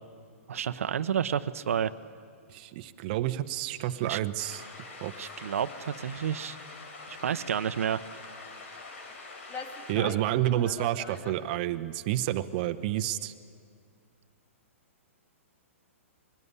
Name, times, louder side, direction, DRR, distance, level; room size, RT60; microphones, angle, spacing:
voice 1, 0.5-1.9 4.0-4.2 5.2-6.6 7.1-8.0 9.9-10.1, right 8 dB, 80° right, 12 dB, 0.8 m, -30 dB
voice 2, 2.5-4.6 5.0-5.1 9.9-13.3, right 13 dB, 40° right, 8 dB, 0.7 m, -29 dB
sound 1, 4.4-9.9, left 3 dB, 65° left, 3.7 m, -45 dB
sound 2, 9.1-9.2 9.5-11.4, left 3 dB, 20° left, 1.6 m, -41 dB
21.5 x 16.5 x 9.7 m, 2.3 s
hypercardioid pair, 155°, 8 cm